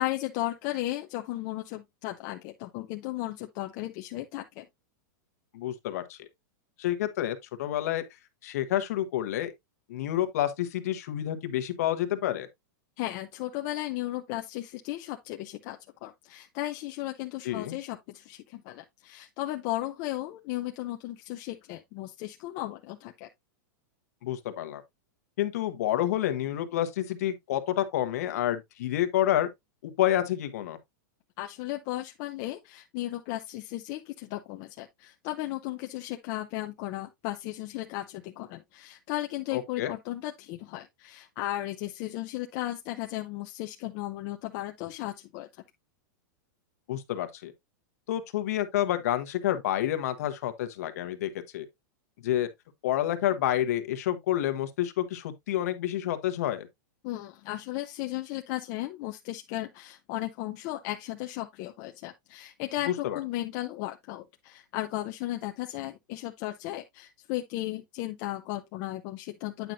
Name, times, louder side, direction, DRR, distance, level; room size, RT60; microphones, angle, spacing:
voice 1, 0.0-4.7 13.0-23.3 31.4-45.5 57.0-69.7, left 16 dB, 30° left, 0.5 m, -35 dB
voice 2, 5.5-6.2 6.8-8.0 8.4-9.5 9.9-12.5 17.4-17.8 24.2-24.8 25.4-29.5 29.8-30.8 39.5-39.9 46.9-47.5 48.1-51.7 52.2-52.5 52.8-56.7 62.9-63.2, left 12 dB, 50° left, 1.2 m, -29 dB
9.2 x 5.8 x 2.6 m
supercardioid pair, 175°, 10 cm